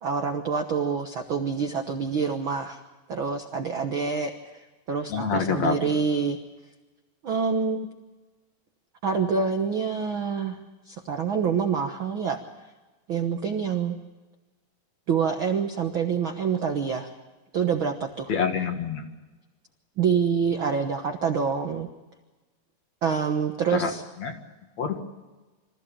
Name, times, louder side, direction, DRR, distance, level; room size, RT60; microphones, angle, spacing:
voice 1, 0.0-2.8 3.1-4.6 4.9-6.4 7.2-7.9 9.0-10.6 10.9-12.4 13.1-14.0 15.1-17.1 17.5-18.3 20.0-21.9 23.0-24.0, right 6 dB, 80° right, 5 dB, 1.1 m, -26 dB
voice 2, 5.1-5.9 18.3-19.0 23.7-23.9 24.2-24.3 24.8-25.0, left 5 dB, 55° left, 3 dB, 2.7 m, -26 dB
26.0 x 15.0 x 8.7 m, 1.2 s
omnidirectional pair, 4.2 m